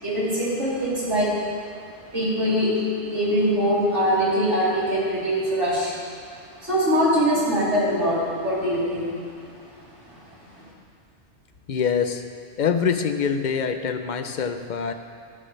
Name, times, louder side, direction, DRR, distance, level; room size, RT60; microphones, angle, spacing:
voice 1, 0.0-1.6 2.1-6.0 6.6-9.2 9.5-9.6 10.1-10.2, equal, 90° right, -9 dB, 3.9 m, -23 dB
voice 2, 11.7-12.2 12.6-14.9, left 6 dB, 50° left, 8 dB, 0.7 m, -24 dB
13.5 x 12.5 x 3.3 m, 2.3 s
omnidirectional pair, 1.2 m